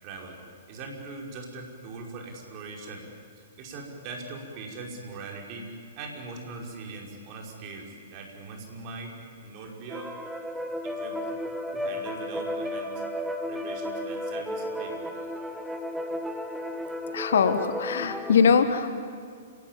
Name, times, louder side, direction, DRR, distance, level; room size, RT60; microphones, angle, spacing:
voice 1, 0.0-0.4 0.7-3.0 3.6-5.7 6.0-9.1 9.4-10.1 10.8-11.3 11.7-13.0 13.5-15.0, right 3 dB, 35° right, 0 dB, 5.5 m, -41 dB
sound 1, 9.9-18.3, equal, 5° right, 1.6 m, -33 dB
voice 2, 17.1-19.0, left 6 dB, 60° left, 10 dB, 1.6 m, -22 dB
30.0 x 17.0 x 9.1 m, 2.1 s
figure-of-eight pair, 110°, 0 cm